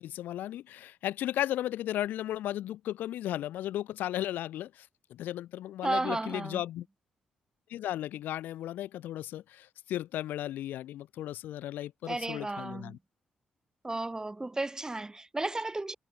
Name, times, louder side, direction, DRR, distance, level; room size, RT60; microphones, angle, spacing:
voice 1, 0.0-6.9 7.7-13.0, left 13 dB, 80° left, 0.8 m, -35 dB
voice 2, 5.8-6.6 12.1-13.0 13.8-15.9, right 2 dB, 20° right, 4.7 m, -33 dB
supercardioid pair, 55°, 3 cm